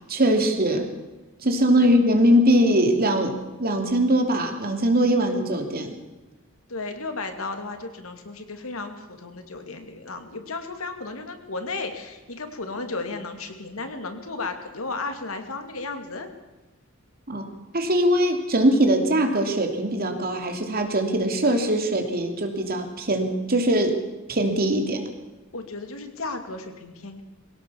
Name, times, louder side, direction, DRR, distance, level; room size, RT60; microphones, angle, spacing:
voice 1, 0.1-0.9 1.4-5.9 17.3-17.5 17.7-24.0 24.3-25.0, right 1 dB, 45° right, 5 dB, 3.0 m, -21 dB
voice 2, 6.7-16.3 25.5-27.2, left 3 dB, 90° left, 6 dB, 2.6 m, -34 dB
21.5 x 17.0 x 7.2 m, 1.1 s
head